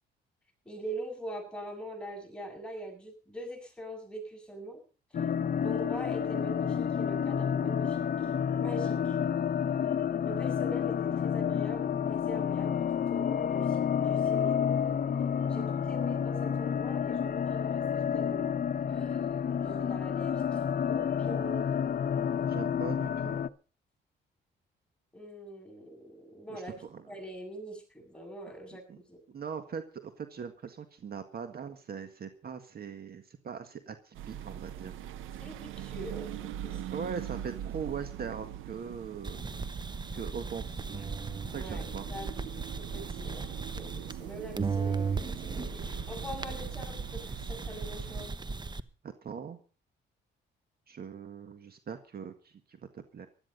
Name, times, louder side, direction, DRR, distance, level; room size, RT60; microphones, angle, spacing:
voice 1, 0.7-4.8 5.6-8.1 8.6-9.2 10.2-12.8 13.1-14.8 15.5-21.7 25.1-26.8 27.1-29.2 35.4-36.8 41.5-42.5 42.8-48.3, right 1 dB, 5° left, 2 dB, 7.7 m, -43 dB
sound 1, 5.1-23.5, left 8 dB, 45° left, 0.9 m, -30 dB
voice 2, 22.5-23.4 26.5-27.0 28.9-29.0 29.3-35.0 36.9-39.5 40.1-41.1 41.5-42.1 49.0-49.6 50.9-53.3, right 6 dB, 50° right, 8 dB, 1.8 m, -41 dB
sound 2, 34.1-48.3, right 11 dB, 90° right, 0.9 m, -42 dB
sound 3, 39.2-44.3 44.6-48.8, right 4 dB, 20° right, 1.0 m, -36 dB
16.0 x 12.5 x 5.5 m, 0.37 s
cardioid pair, 90°, 20 cm